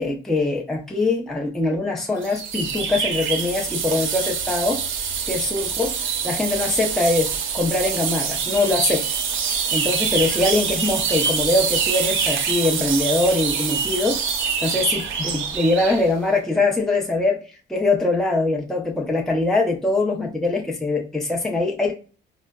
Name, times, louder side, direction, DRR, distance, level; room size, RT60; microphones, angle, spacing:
voice 1, 0.0-4.8 5.3-9.1 9.7-14.2 14.6-17.4 17.7-21.9, left 2 dB, ahead, 0.5 m, -22 dB
sound 1, 2.2-16.1, right 6 dB, 75° right, 0.6 m, -25 dB
4.3 x 2.0 x 2.3 m
cardioid pair, 90°, 20 cm